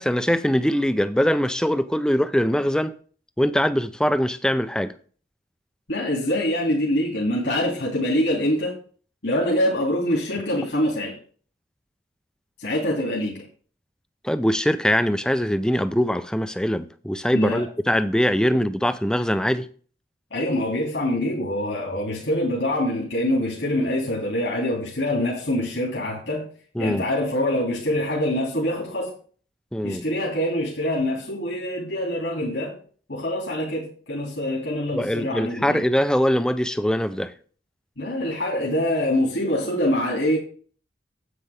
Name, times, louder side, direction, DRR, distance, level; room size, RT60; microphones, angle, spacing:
voice 1, 0.0-2.9 3.4-4.9 14.2-19.7 26.8-27.1 29.7-30.0 34.9-37.3, equal, 5° left, 0.5 m, -22 dB
voice 2, 5.9-8.8 9.2-11.2 12.6-13.5 17.3-17.7 20.3-26.5 26.8-29.1 29.8-32.8 33.1-35.8 38.0-40.4, left 1 dB, 85° left, 2.6 m, -25 dB
9.6 x 8.3 x 3.5 m
head